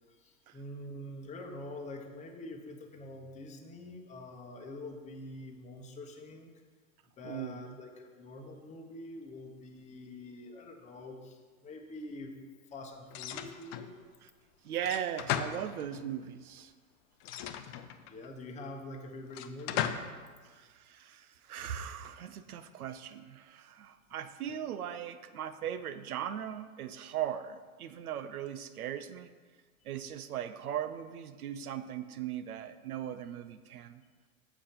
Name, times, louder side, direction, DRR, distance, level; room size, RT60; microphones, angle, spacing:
voice 1, 0.1-6.5 7.2-12.3 12.7-14.0 18.1-19.9 32.6-32.7, left 1 dB, 15° left, 3 dB, 0.9 m, -45 dB
voice 2, 7.2-7.8 14.6-16.7 20.4-29.3 29.8-34.0, right 10 dB, 90° right, 12 dB, 0.7 m, -39 dB
sound 1, 13.1-13.9 14.8-16.1 17.2-18.3 19.3-20.2, left 10 dB, 45° left, 0.6 m, -36 dB
7.1 x 5.1 x 5.7 m, 1.5 s
hypercardioid pair, 115°, 43 cm